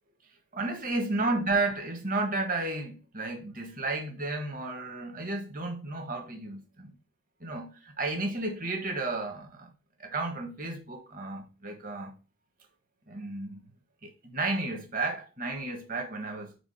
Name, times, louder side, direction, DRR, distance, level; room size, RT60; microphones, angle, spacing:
voice 1, 0.5-6.9 7.4-9.7 10.0-12.1 13.1-13.6 14.0-16.6, right 2 dB, 40° right, 1.6 m, -32 dB
5.1 x 4.9 x 4.9 m
head